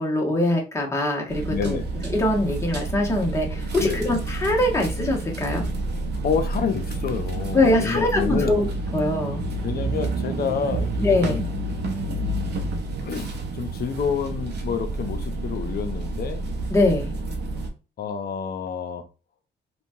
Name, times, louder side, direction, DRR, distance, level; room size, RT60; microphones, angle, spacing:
voice 1, 0.0-1.8 2.1-5.7 7.5-8.7 8.9-9.4 11.0-11.5 16.7-17.1, left 1 dB, 15° left, 1.0 m, -22 dB
sound 1, 1.3-17.7, right 2 dB, 60° right, 0.7 m, -29 dB
voice 2, 1.5-2.0 3.8-4.1 6.2-8.6 9.6-11.4 13.0-16.4 18.0-19.1, left 6 dB, 50° left, 0.5 m, -28 dB
2.8 x 2.3 x 2.7 m
cardioid pair, 90°, 20 cm